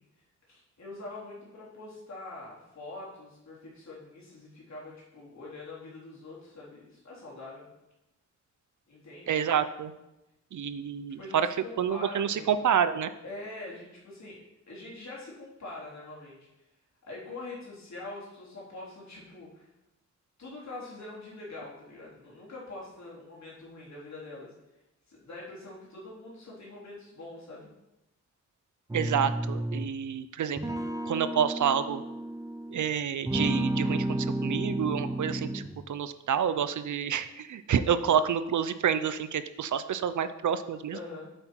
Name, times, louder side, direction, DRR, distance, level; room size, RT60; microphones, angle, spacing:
voice 1, 0.5-7.7 8.9-9.4 11.2-12.5 13.2-14.4 14.7-16.4 17.0-19.7 20.4-24.5 25.1-27.7 40.9-41.3, left 2 dB, 70° left, -6 dB, 3.5 m, -44 dB
voice 2, 9.3-9.9 10.5-11.5 11.8-13.1 28.9-30.6 31.1-32.0 32.7-41.0, right 8 dB, 80° right, 13 dB, 0.6 m, -28 dB
sound 1, 28.9-30.0 30.6-32.8 33.2-35.8, right 1 dB, 10° right, 0.5 m, -31 dB
8.0 x 7.8 x 4.5 m, 0.95 s
wide cardioid pair, 115°, 29 cm